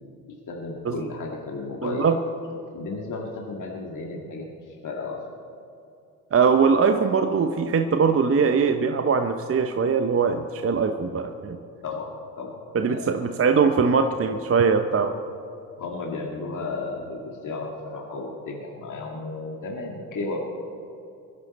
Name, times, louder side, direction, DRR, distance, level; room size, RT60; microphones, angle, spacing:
voice 1, 0.5-2.1 2.7-5.2 11.8-12.1 12.4-13.1 15.8-20.4, left 3 dB, 45° left, -1 dB, 2.2 m, -33 dB
voice 2, 1.8-2.2 6.3-11.6 12.7-15.2, right 5 dB, 30° right, 7 dB, 0.9 m, -21 dB
21.5 x 11.0 x 4.2 m, 2.6 s
hypercardioid pair, 60°, 45 cm